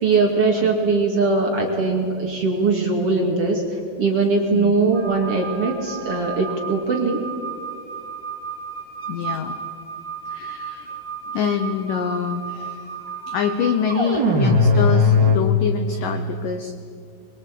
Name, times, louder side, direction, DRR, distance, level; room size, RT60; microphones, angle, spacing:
voice 1, 0.0-3.6 4.0-7.2, right 3 dB, 45° right, 1 dB, 2.3 m, -20 dB
sound 1, 4.9-15.4, left 2 dB, 25° right, 3.5 m, -24 dB
voice 2, 9.1-9.6 10.3-11.0 11.3-12.8 13.3-16.7, left 7 dB, 85° left, 8 dB, 1.9 m, -25 dB
23.5 x 23.0 x 8.5 m, 2.3 s
omnidirectional pair, 5.4 m